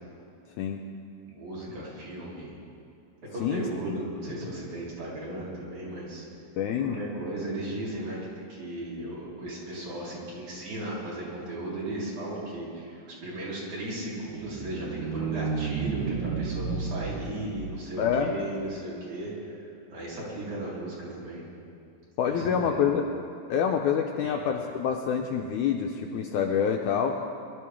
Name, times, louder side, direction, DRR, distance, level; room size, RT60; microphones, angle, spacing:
voice 1, 1.2-2.6 3.3-6.2 6.8-8.2 8.5-19.6 19.9-21.4 22.3-22.9 24.2-24.4, right 1 dB, 55° right, -7 dB, 4.7 m, -36 dB
voice 2, 3.4-4.0 6.6-7.0 18.0-18.3 22.2-23.1 23.5-27.2, left 7 dB, 80° left, 2 dB, 1.8 m, -27 dB
sound 1, 14.2-18.7, right 5 dB, 80° right, 2.5 m, -33 dB
22.0 x 12.5 x 3.6 m, 2.6 s
omnidirectional pair, 4.1 m